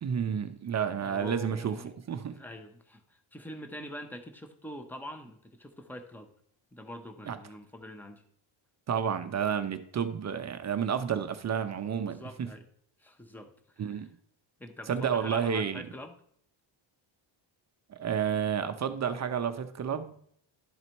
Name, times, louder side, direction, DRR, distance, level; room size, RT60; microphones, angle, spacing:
voice 1, 0.0-2.4 7.3-7.4 8.9-12.5 13.8-14.1 14.9-15.8 17.9-20.2, right 7 dB, 35° right, 0.5 m, -31 dB
voice 2, 1.0-1.9 2.3-6.3 6.7-8.2 12.1-12.7 13.0-14.1 14.6-16.2, left 1 dB, 5° left, 0.7 m, -44 dB
11.5 x 4.0 x 4.4 m
cardioid pair, 140°, 49 cm